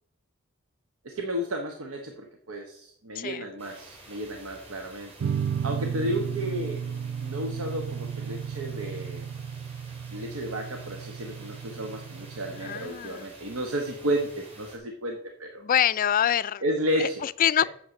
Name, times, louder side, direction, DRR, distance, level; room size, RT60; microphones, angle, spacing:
voice 1, 1.0-5.1 5.6-6.9 7.2-9.3 10.1-15.6 16.6-17.2, equal, 85° right, 4 dB, 1.0 m, -32 dB
sound 1, 3.6-14.8, right 2 dB, 30° right, 3.5 m, -50 dB
sound 2, 5.2-12.9, right 7 dB, 55° right, 0.4 m, -34 dB
voice 2, 12.6-13.3 15.6-16.6 17.0-17.6, left 10 dB, 40° left, 17 dB, 0.3 m, -25 dB
8.1 x 6.9 x 6.0 m, 0.68 s
head